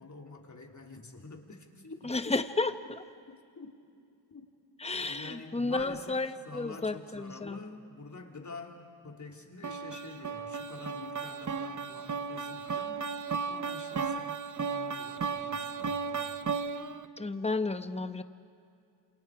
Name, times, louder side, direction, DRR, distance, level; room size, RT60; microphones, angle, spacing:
voice 1, 0.0-1.9 2.2-2.3 3.3-3.8 4.3-4.4 5.0-6.2 6.4-13.0 13.4-16.4, left 3 dB, 40° left, 2 dB, 3.3 m, -47 dB
voice 2, 2.0-3.0 4.8-7.6 17.2-18.2, left 3 dB, 15° left, 10 dB, 1.1 m, -32 dB
sound 1, 9.6-17.1, right 5 dB, 40° right, 1.1 m, -35 dB
28.5 x 27.5 x 4.9 m, 2.5 s
cardioid pair, 65°, 47 cm